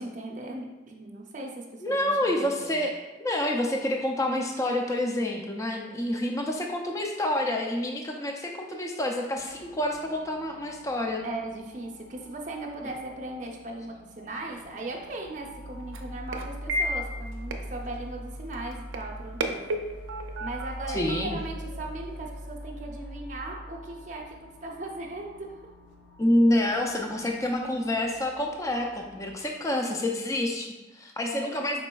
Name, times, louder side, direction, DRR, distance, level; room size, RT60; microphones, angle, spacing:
voice 1, 0.0-2.7 11.2-19.7 20.4-25.6 31.2-31.6, right 2 dB, 40° right, 0 dB, 0.6 m, -38 dB
voice 2, 1.8-11.2 20.9-21.4 26.2-31.8, left 1 dB, 15° left, 2 dB, 0.3 m, -28 dB
sound 1, 9.4-29.3, equal, 80° left, 0.5 m, -43 dB
sound 2, 14.5-22.4, right 1 dB, 85° right, 0.4 m, -36 dB
5.1 x 4.0 x 2.3 m, 1.2 s
head